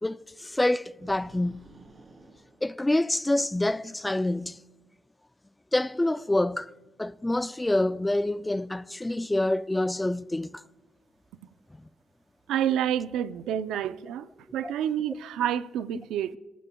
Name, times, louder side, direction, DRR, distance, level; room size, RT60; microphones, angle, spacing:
voice 1, 0.0-1.7 2.6-4.6 5.7-6.7 7.0-10.6, left 1 dB, 10° left, 0.3 m, -27 dB
sound 1, 1.0-3.4, right 2 dB, 30° right, 3.3 m, -53 dB
voice 2, 12.5-14.3 14.5-16.4, right 10 dB, 85° right, 0.5 m, -28 dB
19.5 x 14.0 x 2.3 m
cardioid pair, 90°, 0 cm